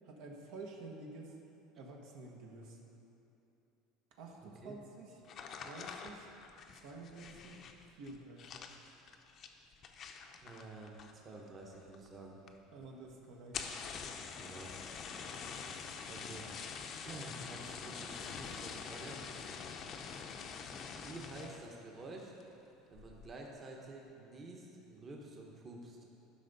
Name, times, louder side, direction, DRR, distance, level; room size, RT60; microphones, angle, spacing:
voice 1, 0.0-1.3 1.8-2.8 4.2-5.1 5.6-6.3 6.8-7.6 8.0-8.6 12.7-13.6, right 3 dB, 70° right, 0 dB, 1.2 m, -50 dB
voice 2, 4.4-4.8 10.4-12.4 14.4-15.1 15.7-16.5 17.0-19.2 21.0-22.4 22.9-26.0, right 2 dB, 30° right, -1 dB, 1.1 m, -50 dB
sound 1, 5.2-11.4 11.7-12.2 12.5-12.6 12.8-12.9 13.4-21.7 22.2-22.5 22.9-23.3, left 6 dB, 40° left, 0.6 m, -46 dB
11.5 x 5.6 x 4.1 m, 2.9 s
supercardioid pair, 125°, 0 cm